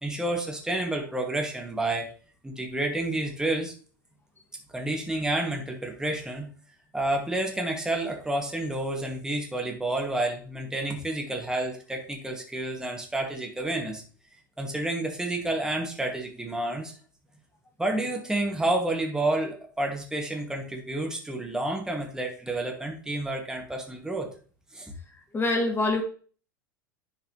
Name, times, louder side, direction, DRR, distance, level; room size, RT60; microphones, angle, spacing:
voice 1, 0.0-2.1 2.4-3.7 4.7-6.5 6.9-14.0 14.6-16.9 17.8-24.3 24.7-24.9, right 1 dB, 5° right, 1 dB, 2.0 m, -30 dB
voice 2, 25.3-26.0, left 2 dB, 20° left, 2 dB, 2.5 m, -24 dB
10.5 x 4.6 x 3.1 m, 0.40 s
figure-of-eight pair, 85°, 11 cm